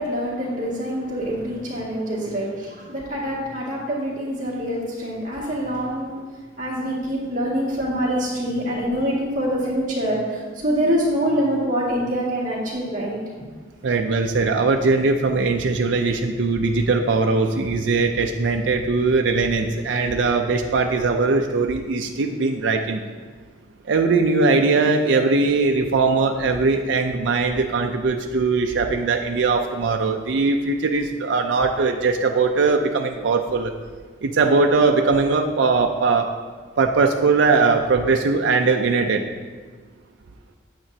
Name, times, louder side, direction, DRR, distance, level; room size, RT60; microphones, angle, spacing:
voice 1, 0.0-6.1 6.6-10.2 10.6-13.4, equal, 45° right, -6 dB, 2.0 m, -25 dB
voice 2, 13.8-23.0 23.9-33.7 34.2-36.3 36.8-39.2, right 4 dB, 70° right, 3 dB, 0.5 m, -20 dB
8.8 x 7.9 x 2.8 m, 1.5 s
head